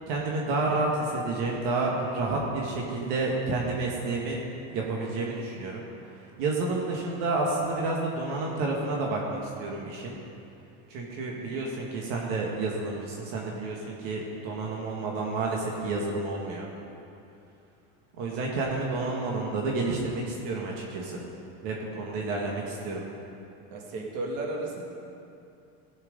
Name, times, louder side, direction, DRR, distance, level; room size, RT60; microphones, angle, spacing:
voice 1, 0.1-4.4 4.7-5.8 6.1-10.2 10.9-16.7 18.2-21.2 21.6-23.0, right 3 dB, 70° right, -2 dB, 1.9 m, -30 dB
voice 2, 23.7-24.8, right 2 dB, 50° right, -1 dB, 2.1 m, -33 dB
17.0 x 6.5 x 5.3 m, 2.7 s
supercardioid pair, 140°, 31 cm